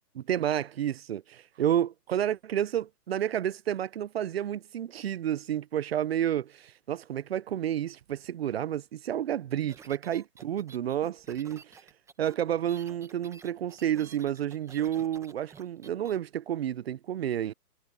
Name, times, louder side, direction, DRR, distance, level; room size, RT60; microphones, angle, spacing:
voice 1, 0.1-11.7 12.2-17.5, right 10 dB, 40° right, 0.7 m, -30 dB
sound 1, 9.7-16.2, right 5 dB, 5° right, 1.6 m, -52 dB
hypercardioid pair, 145°, 49 cm